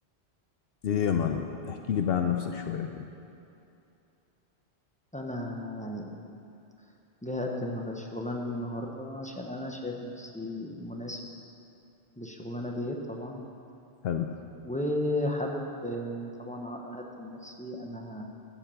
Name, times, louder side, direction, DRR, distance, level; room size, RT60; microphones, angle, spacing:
voice 1, 0.8-3.1 14.0-14.4, left 8 dB, 70° left, 5 dB, 0.8 m, -29 dB
voice 2, 5.1-6.2 7.2-11.2 12.2-13.4 14.6-18.2, left 1 dB, 10° left, 0 dB, 0.8 m, -34 dB
12.5 x 5.8 x 7.0 m, 2.7 s
omnidirectional pair, 1.1 m